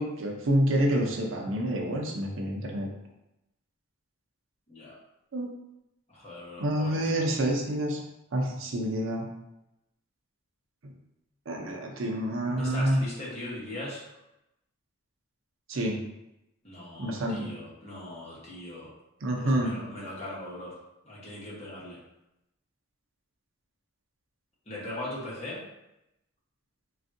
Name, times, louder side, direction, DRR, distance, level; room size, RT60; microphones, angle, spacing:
voice 1, 0.0-2.9 5.3-5.5 6.6-8.0 8.3-9.2 10.8-10.9 11.5-13.0 15.7-16.0 17.0-17.5 19.2-19.7, right 1 dB, 70° right, 0 dB, 0.6 m, -28 dB
voice 2, 6.1-7.3 12.6-14.0 16.6-18.9 19.3-20.7 21.0-22.0 24.7-25.6, left 1 dB, 30° left, -7 dB, 1.0 m, -40 dB
3.4 x 2.3 x 2.6 m, 0.88 s
head